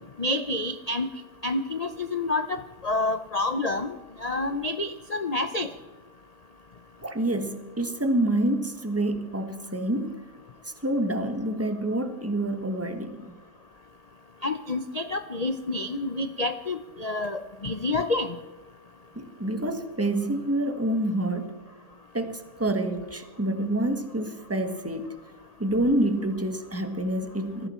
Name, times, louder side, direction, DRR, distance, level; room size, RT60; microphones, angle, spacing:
voice 1, 0.2-1.1 1.4-3.9 4.2-5.7 14.4-18.3, left 2 dB, 50° left, 9 dB, 0.4 m, -28 dB
voice 2, 7.0-10.1 10.8-13.3 19.1-21.6 22.1-25.1 25.6-27.7, right 1 dB, 10° right, 8 dB, 1.1 m, -27 dB
20.0 x 14.5 x 4.3 m, 1.2 s
omnidirectional pair, 1.7 m